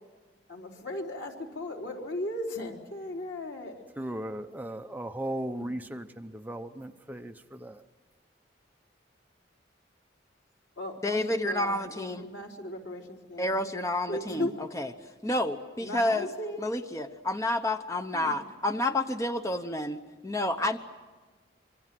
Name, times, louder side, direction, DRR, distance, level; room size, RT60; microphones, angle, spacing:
voice 1, 0.5-3.9 10.8-13.6 14.1-14.6 15.8-16.7 18.1-18.4, left 1 dB, 85° left, 3.9 m, -37 dB
voice 2, 4.0-7.8, right 1 dB, 10° right, 0.8 m, -37 dB
voice 3, 11.0-12.3 13.4-14.5 14.7-14.9 15.2-16.3 16.6-20.8, left 1 dB, 15° left, 0.9 m, -29 dB
25.5 x 25.0 x 7.7 m
head